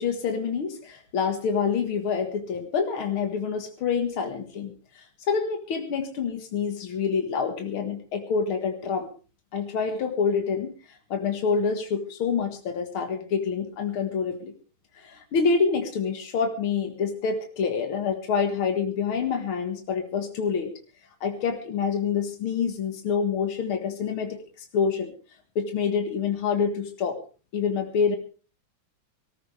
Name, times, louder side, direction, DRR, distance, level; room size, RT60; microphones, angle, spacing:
voice 1, 0.0-9.1 9.5-14.5 15.0-20.7 21.2-24.4 24.7-25.1 25.6-27.2 27.5-28.2, left 6 dB, 80° left, 5 dB, 2.5 m, -27 dB
23.0 x 14.0 x 3.4 m, 0.35 s
omnidirectional pair, 2.3 m